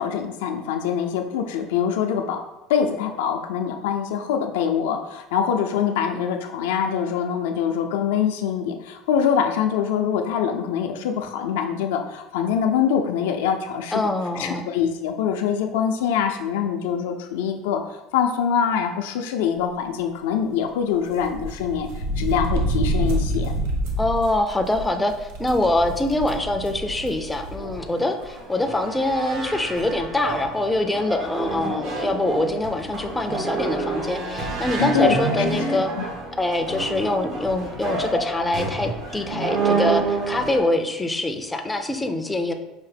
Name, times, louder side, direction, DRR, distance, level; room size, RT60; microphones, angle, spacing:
voice 1, 0.0-2.4 2.7-17.8 18.1-21.9 22.2-23.5 34.8-35.2 35.7-36.1, left 8 dB, 90° left, 4 dB, 0.4 m, -24 dB
voice 2, 13.9-14.7 24.0-35.9 36.4-42.5, left 1 dB, 10° left, 5 dB, 0.4 m, -24 dB
sound 1, 21.1-27.8 28.2-28.3 29.4-29.5 29.7-30.0, right 1 dB, 85° right, 0.6 m, -28 dB
sound 2, 27.1-40.6, right 3 dB, 60° right, 1.1 m, -28 dB
5.5 x 2.1 x 3.3 m, 1.0 s
supercardioid pair, 110°, 0 cm